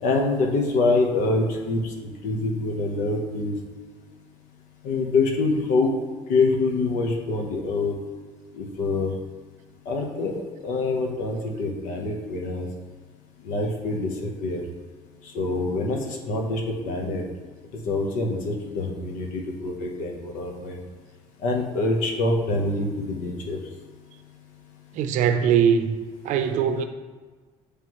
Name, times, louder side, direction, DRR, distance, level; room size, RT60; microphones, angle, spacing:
voice 1, 0.0-3.5 4.8-5.9 6.3-7.9 8.5-9.1 9.9-12.7 13.4-14.6 15.2-17.2 17.7-20.8 21.4-23.6, left 3 dB, 75° left, 1.1 m, -25 dB
voice 2, 24.9-26.0 26.2-26.8, right 8 dB, 65° right, 0.5 m, -21 dB
9.1 x 3.3 x 3.1 m
cardioid pair, 130°, 13 cm